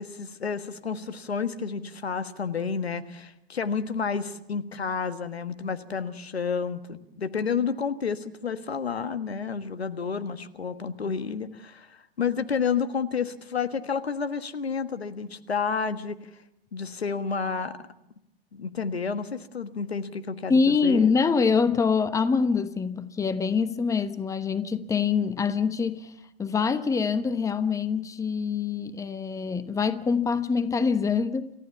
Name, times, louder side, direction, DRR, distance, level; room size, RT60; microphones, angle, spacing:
voice 1, 0.0-16.2 16.7-17.8 18.5-21.1, left 6 dB, 80° left, 1.6 m, -30 dB
voice 2, 20.5-26.1 26.4-31.5, left 5 dB, 10° left, 1.0 m, -25 dB
28.0 x 14.5 x 7.2 m
figure-of-eight pair, 105°, 31 cm